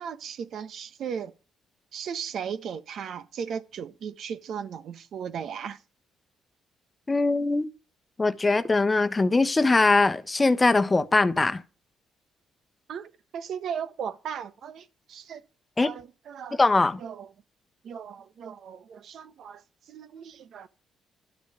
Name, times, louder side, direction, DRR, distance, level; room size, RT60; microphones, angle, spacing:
voice 1, 0.0-1.3 1.9-5.8 12.9-15.4 15.8-16.6 17.0-17.3 17.8-19.6 19.9-20.7, right 7 dB, 65° right, 1.3 m, -36 dB
voice 2, 7.1-7.7 8.2-11.6 15.8-15.9 16.6-17.0, left 3 dB, 20° left, 1.0 m, -21 dB
12.0 x 6.6 x 8.0 m
cardioid pair, 90°, 0 cm